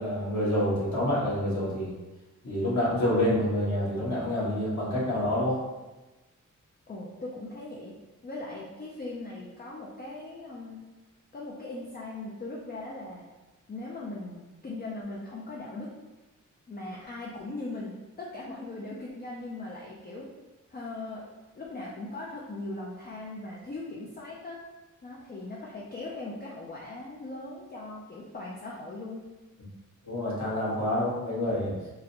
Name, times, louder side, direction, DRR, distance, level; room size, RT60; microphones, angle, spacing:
voice 1, 0.0-1.9 2.4-5.6 30.1-31.8, left 1 dB, 60° left, -8 dB, 1.5 m, -27 dB
voice 2, 6.9-7.9 8.2-10.8 11.3-13.3 13.7-15.9 16.7-20.3 20.7-24.6 25.0-29.2, left 2 dB, 30° left, -4 dB, 0.4 m, -39 dB
3.8 x 2.1 x 2.8 m, 1.1 s
wide cardioid pair, 100°, 32 cm